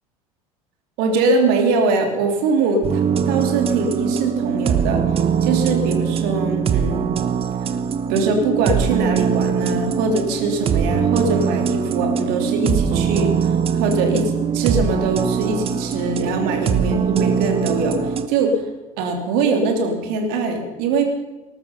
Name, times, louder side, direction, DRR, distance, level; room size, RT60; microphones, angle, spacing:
voice 1, 1.0-5.0 5.4-7.1 8.1-18.7 19.0-21.0, right 3 dB, 55° right, 4 dB, 3.1 m, -22 dB
sound 1, 2.8-18.3, right 7 dB, 30° right, 1.0 m, -21 dB
19.0 x 13.0 x 5.5 m, 1.1 s
figure-of-eight pair, 70°, 19 cm